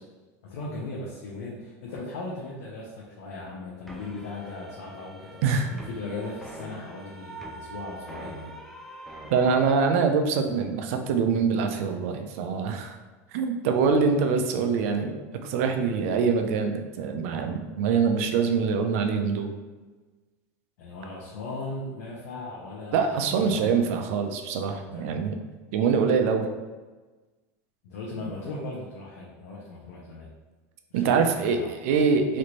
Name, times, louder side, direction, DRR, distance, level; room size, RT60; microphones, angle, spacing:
voice 1, 0.4-8.5 20.8-23.9 24.8-25.1 27.8-30.3 30.9-32.0, left 2 dB, 80° left, -4 dB, 0.7 m, -38 dB
sound 1, 3.9-9.6, right 2 dB, ahead, 0.4 m, -43 dB
voice 2, 9.3-13.0 13.3-19.5 22.9-25.4 25.7-26.5 30.9-32.4, right 5 dB, 70° right, 6 dB, 0.4 m, -24 dB
3.1 x 2.5 x 3.0 m, 1.2 s
supercardioid pair, 135°, 8 cm